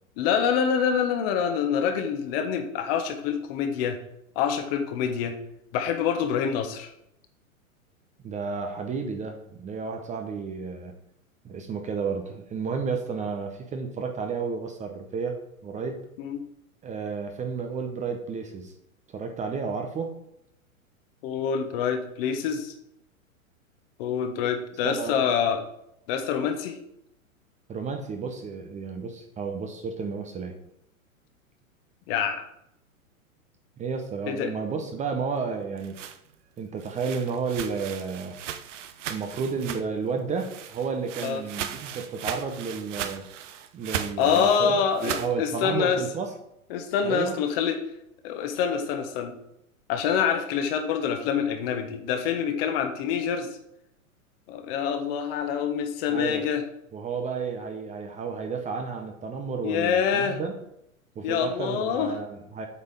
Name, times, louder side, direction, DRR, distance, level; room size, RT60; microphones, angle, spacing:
voice 1, 0.2-4.0 4.3-5.4 5.7-6.9 16.2-16.4 21.2-22.7 24.0-25.6 26.1-26.8 32.1-32.4 34.3-34.5 41.2-41.4 44.2-46.0 46.7-47.8 48.2-49.3 49.9-53.5 54.5-56.6 59.6-60.4 61.2-62.1, left 7 dB, 40° left, 6 dB, 1.3 m, -26 dB
voice 2, 8.2-10.9 11.4-16.0 16.8-18.7 19.1-20.1 24.8-25.2 27.7-30.6 33.8-36.0 36.6-38.4 39.1-43.2 43.7-46.3 47.0-47.4 56.1-56.5 56.9-60.5 61.2-62.7, right 5 dB, 15° right, 5 dB, 0.8 m, -32 dB
sound 1, 35.6-40.1 40.4-45.3, right 9 dB, 55° right, 0.9 m, -37 dB
8.3 x 5.4 x 5.2 m, 0.78 s
figure-of-eight pair, 105°, 42 cm